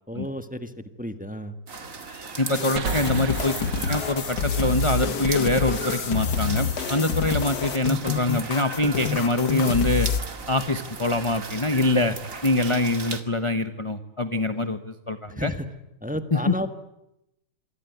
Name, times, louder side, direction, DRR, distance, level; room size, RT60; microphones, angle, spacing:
voice 1, 0.1-1.5 14.3-14.4 15.3-15.7 16.0-16.7, equal, 5° right, 8 dB, 1.3 m, -32 dB
sound 1, 1.7-13.2, right 4 dB, 45° right, 2.5 m, -37 dB
voice 2, 2.4-10.1 10.5-12.2 12.4-15.5 16.3-16.7, left 2 dB, 20° left, 9 dB, 0.9 m, -24 dB
sound 2, 2.5-10.2, left 5 dB, 65° left, 1.8 m, -27 dB
sound 3, 2.8-6.2, right 5 dB, 70° right, 2.4 m, -35 dB
27.0 x 23.0 x 9.4 m, 0.89 s
omnidirectional pair, 2.0 m